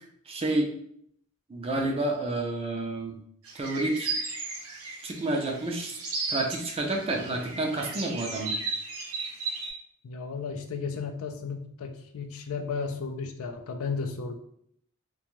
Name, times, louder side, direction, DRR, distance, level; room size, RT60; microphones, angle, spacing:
voice 1, 0.3-0.7 1.5-3.2 3.5-4.1 5.0-6.0 6.3-8.6, right 2 dB, 25° right, 2 dB, 0.4 m, -29 dB
sound 1, 3.5-9.7, right 3 dB, 75° right, 0.7 m, -35 dB
voice 2, 10.0-14.4, left 5 dB, 70° left, 5 dB, 0.4 m, -34 dB
2.6 x 2.2 x 3.0 m, 0.66 s
head